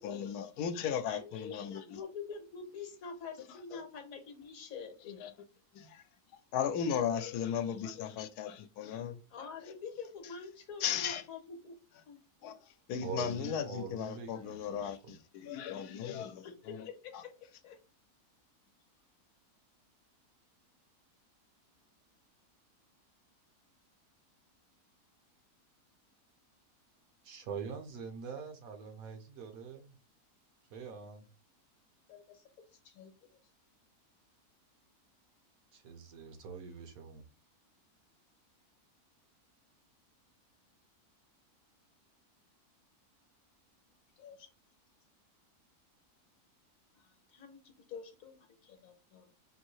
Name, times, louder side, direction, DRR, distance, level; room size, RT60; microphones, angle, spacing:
voice 1, 0.0-2.0 3.7-3.8 5.2-5.3 5.7-6.0 6.5-9.2 10.8-11.2 12.4-12.5 12.9-16.8 17.1-17.2, left 8 dB, 80° left, 1.1 m, -36 dB
voice 2, 1.0-5.2 9.3-11.7 12.1-12.2 16.4-17.3 17.6-17.8 32.1-32.4 32.8-33.4 44.2-44.5 46.9-47.6 47.9-49.4, left 5 dB, 65° left, 1.2 m, -47 dB
voice 3, 13.0-15.1 27.2-29.9 30.7-31.2 35.7-37.2, right 6 dB, 70° right, 1.3 m, -44 dB
5.3 x 2.6 x 3.1 m
omnidirectional pair, 1.6 m